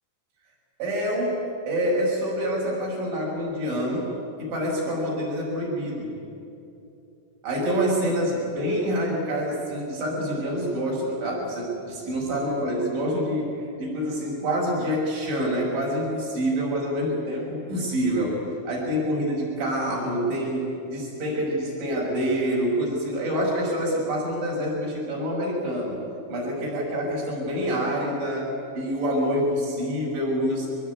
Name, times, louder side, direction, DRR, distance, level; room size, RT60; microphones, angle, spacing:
voice 1, 0.8-4.1 4.4-6.2 7.4-18.4 18.7-26.0 26.3-30.7, equal, 65° right, -4 dB, 9.0 m, -26 dB
24.0 x 21.0 x 9.8 m, 2.9 s
omnidirectional pair, 5.7 m